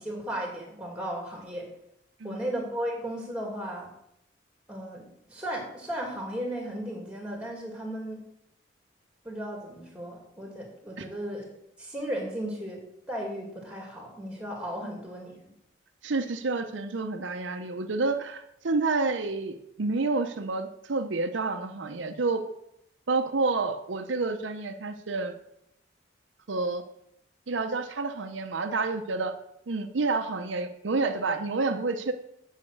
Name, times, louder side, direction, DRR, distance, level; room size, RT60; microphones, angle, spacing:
voice 1, 0.0-1.7 2.2-3.9 4.7-8.2 9.2-11.4 11.8-15.3, right 1 dB, 5° right, 0 dB, 2.2 m, -35 dB
voice 2, 16.0-22.4 23.1-25.3 26.5-26.8 27.5-29.3 29.7-32.1, right 3 dB, 80° right, 7 dB, 0.7 m, -29 dB
8.7 x 5.7 x 6.4 m, 0.78 s
head